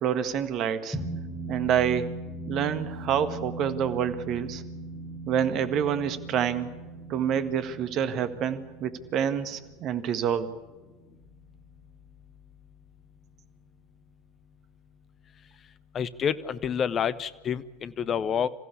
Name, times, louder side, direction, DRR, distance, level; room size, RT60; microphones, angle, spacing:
voice 1, 0.0-1.0 1.5-2.1 2.5-4.6 5.3-6.7 7.1-10.5, right 8 dB, 45° right, 10 dB, 1.7 m, -27 dB
sound 1, 0.9-11.6, right 2 dB, 5° left, 7.9 m, -40 dB
voice 2, 15.9-18.5, left 7 dB, 35° left, 15 dB, 1.1 m, -28 dB
26.5 x 15.5 x 8.5 m, 1.2 s
figure-of-eight pair, 75°, 0 cm